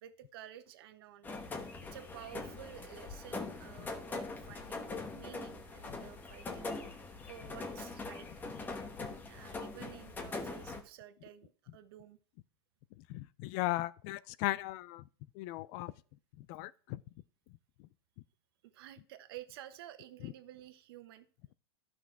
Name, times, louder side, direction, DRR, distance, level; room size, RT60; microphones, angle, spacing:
voice 1, 0.0-1.4 1.9-6.7 7.3-8.3 9.2-12.2 18.6-21.3, right 12 dB, 70° right, 1.2 m, -52 dB
sound 1, 1.2-10.8, left 3 dB, 15° left, 1.1 m, -42 dB
voice 2, 13.1-15.0 15.4-15.9 16.4-17.0 20.2-20.3, left 16 dB, 45° left, 0.4 m, -37 dB
11.5 x 6.2 x 4.7 m
supercardioid pair, 150°, 13 cm